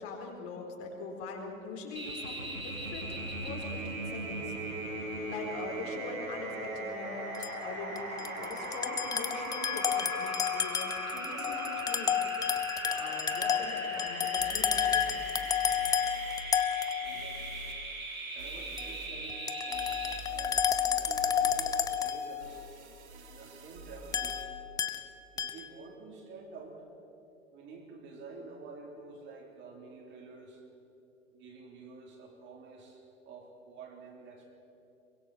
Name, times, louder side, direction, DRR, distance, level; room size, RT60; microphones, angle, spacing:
voice 1, 0.0-4.5 5.0-12.2 12.8-15.1, left 4 dB, 35° left, 1 dB, 4.2 m, -42 dB
sound 1, 2.0-20.2, right 2 dB, 90° right, 5.5 m, -39 dB
sound 2, 7.3-7.5 8.0-17.4 18.8-18.9 19.3-22.6 24.1-25.0 25.4-25.7, left 8 dB, 10° left, 0.6 m, -31 dB
sound 3, 13.7-13.8 14.4-16.4 17.0-17.7 18.4-19.1 19.7-24.4, right 2 dB, 55° right, 3.0 m, -48 dB
voice 2, 16.7-17.6 18.3-20.0 20.3-22.7 23.3-24.5 25.3-26.9 27.5-30.6 31.3-34.5, right 4 dB, 25° right, 1 dB, 3.6 m, -49 dB
23.5 x 21.5 x 7.3 m, 2.7 s
figure-of-eight pair, 100°, 41 cm